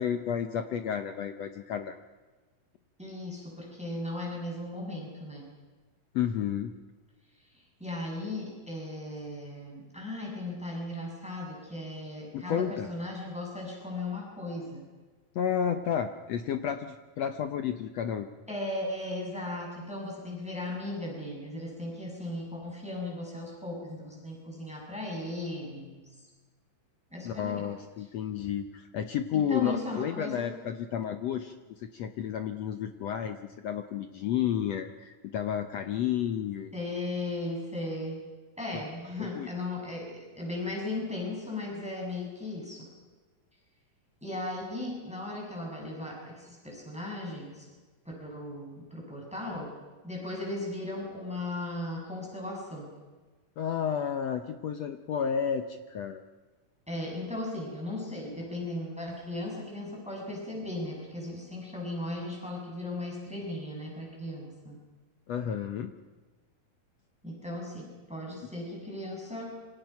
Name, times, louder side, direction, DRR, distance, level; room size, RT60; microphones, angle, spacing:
voice 1, 0.0-2.0 6.1-6.7 12.3-12.9 15.3-18.3 27.2-36.7 38.7-38.8 39.3-39.5 53.6-56.2 65.3-65.9, left 8 dB, 75° left, 8 dB, 1.5 m, -31 dB
voice 2, 3.0-5.5 7.5-14.8 18.5-26.3 27.1-27.7 29.3-30.5 36.7-38.2 38.6-42.9 44.2-47.7 48.1-49.7 50.0-52.9 56.9-64.8 67.2-69.5, left 1 dB, ahead, -2 dB, 7.1 m, -37 dB
27.0 x 25.5 x 5.9 m, 1.3 s
omnidirectional pair, 4.2 m